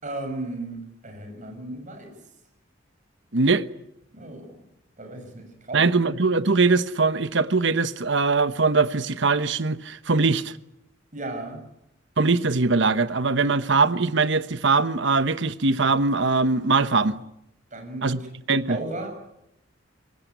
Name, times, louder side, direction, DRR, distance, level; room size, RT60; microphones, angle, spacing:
voice 1, 0.0-2.1 4.1-4.6 5.0-5.9 11.1-11.6 17.7-18.3 18.7-19.1, right 2 dB, 40° right, 6.7 m, -35 dB
voice 2, 3.3-3.6 5.7-10.5 12.2-17.2 18.0-18.2 18.5-18.8, right 4 dB, 65° right, 1.1 m, -21 dB
25.0 x 20.5 x 9.4 m
head